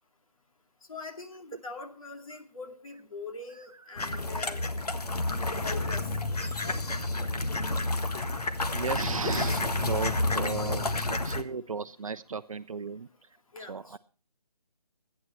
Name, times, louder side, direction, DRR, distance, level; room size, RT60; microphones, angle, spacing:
voice 1, 0.9-4.6 5.6-6.1 6.6-6.8 13.5-13.8, left 4 dB, 60° left, 5 dB, 2.2 m, -42 dB
sound 1, 4.0-11.4, left 2 dB, 85° left, 1.6 m, -30 dB
voice 2, 8.7-13.1 13.7-14.0, right 5 dB, 60° right, 11 dB, 0.6 m, -35 dB
25.5 x 9.6 x 3.1 m, 0.34 s
figure-of-eight pair, 165°, 20 cm